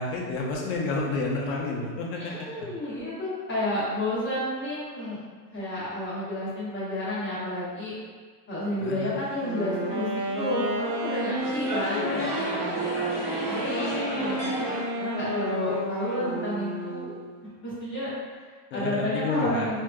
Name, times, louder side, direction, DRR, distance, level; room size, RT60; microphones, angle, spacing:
voice 1, 0.0-2.3 2.6-2.7 8.8-9.1 18.7-19.7, left 3 dB, 80° left, -1 dB, 0.9 m, -30 dB
voice 2, 2.1-5.2 5.5-7.9 8.5-10.1 10.4-14.5 15.0-17.1 17.6-18.1 18.4-19.8, left 1 dB, 25° left, -10 dB, 1.2 m, -31 dB
Wind instrument woodwind instrument, 9.3-17.4, right 1 dB, 50° right, 0.7 m, -31 dB
sound 1, 11.4-14.8, equal, 5° right, 0.4 m, -32 dB
3.3 x 2.8 x 2.2 m, 1.5 s
supercardioid pair, 150°, 46 cm